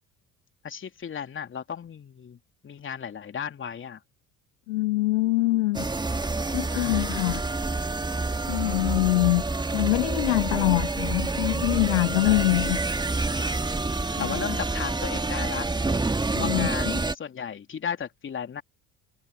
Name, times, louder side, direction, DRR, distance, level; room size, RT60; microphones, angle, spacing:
voice 1, 0.6-4.0 6.7-7.1 12.2-12.5 14.2-15.7 16.4-18.6, left 7 dB, 30° left, 3.3 m, -35 dB
voice 2, 4.7-5.8 6.5-7.4 8.5-9.4 9.7-12.8 14.2-14.4 16.3-16.9, left 20 dB, 65° left, 1.0 m, -24 dB
sound 1, 5.7-17.1, right 3 dB, 10° right, 1.9 m, -28 dB
figure-of-eight pair, 60°, 40 cm